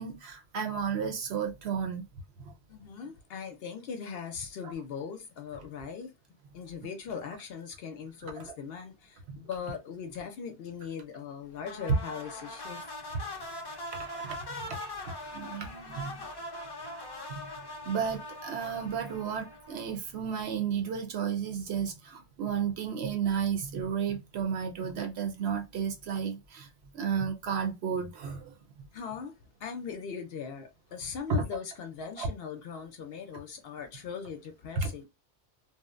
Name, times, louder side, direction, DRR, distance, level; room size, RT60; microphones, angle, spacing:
voice 1, 0.0-2.0 2.4-2.5 8.4-8.5 9.3-9.4 13.9-14.4 14.7-14.8 15.0-16.3 17.3-17.5 17.8-26.7 26.9-28.5 31.3-31.4 32.2-32.3 34.8-34.9, right 6 dB, 70° right, 0.9 m, -33 dB
voice 2, 2.7-6.1 6.5-12.9 28.9-29.3 29.6-35.1, left 6 dB, 65° left, 0.7 m, -40 dB
sound 1, 11.6-20.1, left 1 dB, 40° left, 0.3 m, -41 dB
2.7 x 2.0 x 2.4 m
omnidirectional pair, 1.2 m